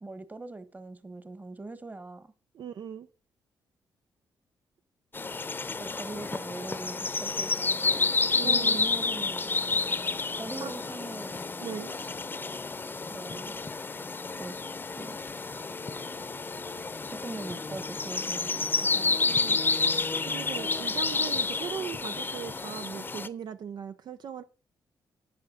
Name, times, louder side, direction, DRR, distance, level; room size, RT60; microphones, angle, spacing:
voice 1, 0.0-2.3 5.7-8.0 8.4-9.5 10.4-11.5 13.1-13.6 14.4-14.6 15.0-15.2 17.1-19.2, right 2 dB, 20° right, 1.3 m, -41 dB
voice 2, 2.5-3.1 8.3-8.8 10.6-11.0 11.6-12.0 19.2-19.6 20.3-24.4, right 8 dB, 65° right, 0.7 m, -39 dB
sound 1, 5.1-23.3, left 4 dB, 25° left, 0.8 m, -30 dB
11.5 x 8.5 x 3.9 m
cardioid pair, 90°, 8 cm